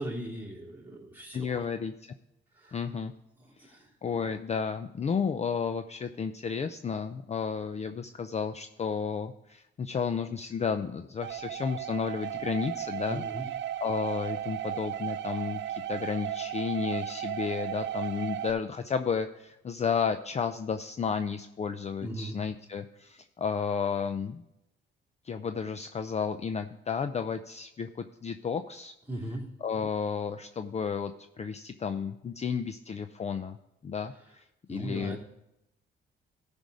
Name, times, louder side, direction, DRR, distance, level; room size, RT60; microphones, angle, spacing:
voice 1, 0.0-1.6 2.6-2.8 3.4-3.9 13.1-13.5 22.0-22.3 29.1-29.4 34.7-35.2, right 1 dB, 10° right, -3 dB, 2.8 m, -38 dB
voice 2, 1.3-1.9 2.7-3.1 3.6-13.2 13.8-24.4 25.2-28.9 29.6-33.6 33.8-35.2, left 6 dB, 35° left, 9 dB, 0.5 m, -32 dB
sound 1, 11.2-18.5, right 11 dB, 65° right, 0.5 m, -35 dB
13.5 x 5.3 x 4.8 m, 0.86 s
cardioid pair, 90°, 20 cm